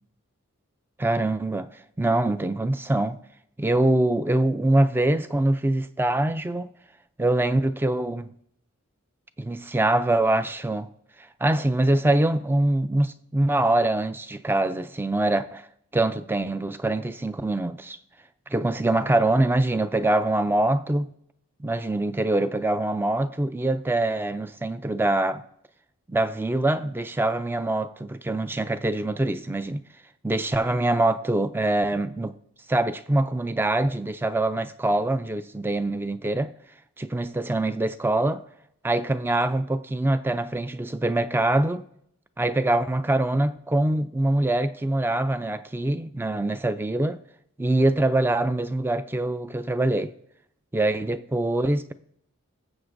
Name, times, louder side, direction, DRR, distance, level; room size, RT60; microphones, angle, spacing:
voice 1, 1.0-1.7 2.0-3.2 3.6-6.7 7.2-8.3 9.4-10.9 11.4-15.7 15.9-18.0 18.5-21.1 21.6-25.4 26.1-29.8 30.2-32.4 32.7-36.5 37.0-38.4 38.8-41.9 42.4-47.2 47.6-50.1 50.7-51.9, right 2 dB, 10° right, 0.3 m, -24 dB
19.0 x 7.2 x 2.6 m
head